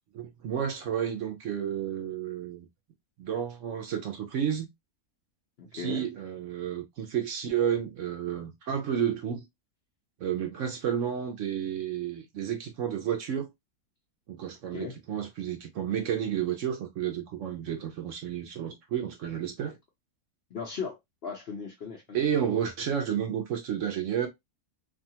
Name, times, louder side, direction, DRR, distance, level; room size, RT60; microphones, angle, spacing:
voice 1, 0.1-2.7 3.2-4.7 5.7-9.4 10.2-13.5 14.3-19.8 22.1-24.3, right 9 dB, 65° right, 0.8 m, -31 dB
voice 2, 5.6-6.1 14.7-15.0 20.5-22.2, left 5 dB, 60° left, 0.6 m, -37 dB
2.7 x 2.3 x 2.7 m
omnidirectional pair, 1.6 m